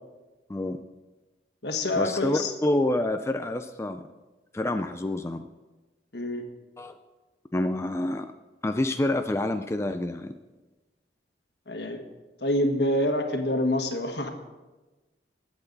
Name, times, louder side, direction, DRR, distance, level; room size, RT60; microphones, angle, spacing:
voice 1, 0.5-0.8 1.9-4.1 4.5-5.4 6.8-6.9 7.5-8.3 8.6-10.3, left 1 dB, 15° left, 7 dB, 0.4 m, -27 dB
voice 2, 1.6-2.5 6.1-6.4 11.7-12.0 12.4-14.3, left 1 dB, 70° left, 5 dB, 1.5 m, -26 dB
19.5 x 8.0 x 4.0 m, 1.2 s
head